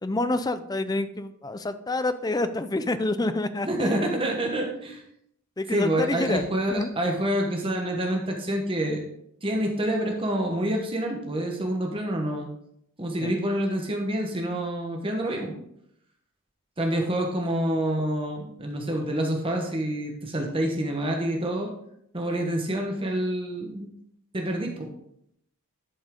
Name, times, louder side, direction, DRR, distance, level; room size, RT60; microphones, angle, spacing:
voice 1, 0.0-4.0 5.6-6.9 13.2-13.3, left 2 dB, 20° left, 11 dB, 0.4 m, -28 dB
voice 2, 3.7-5.0 5.7-9.0 9.4-12.5 13.0-15.6 16.8-21.7 22.1-23.9 24.3-24.9, right 1 dB, 25° right, 2 dB, 1.1 m, -27 dB
11.0 x 5.3 x 3.7 m, 0.74 s
head